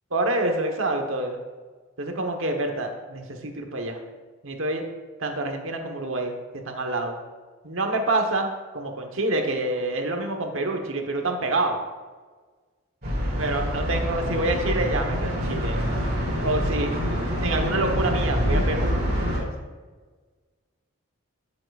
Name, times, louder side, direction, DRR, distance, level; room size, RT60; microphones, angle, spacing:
voice 1, 0.1-1.4 2.0-4.0 4.4-4.8 5.2-7.2 7.6-11.8 13.4-15.9 16.4-16.9 17.2-19.0 19.3-19.5, right 2 dB, 65° right, 4 dB, 1.2 m, -27 dB
sound 1, 13.0-19.4, equal, 45° right, 2.5 m, -26 dB
13.5 x 7.6 x 2.5 m, 1.4 s
head